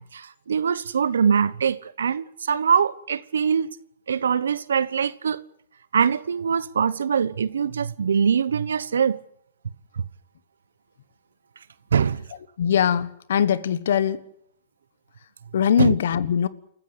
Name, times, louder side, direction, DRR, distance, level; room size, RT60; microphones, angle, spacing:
voice 1, 0.0-3.7 4.1-5.4 5.9-9.2 11.9-12.2 15.8-15.9, right 7 dB, 85° right, 1.0 m, -23 dB
voice 2, 12.6-14.2 15.5-16.5, left 8 dB, 75° left, 1.3 m, -21 dB
29.0 x 14.5 x 8.1 m
hypercardioid pair, 130°, 0 cm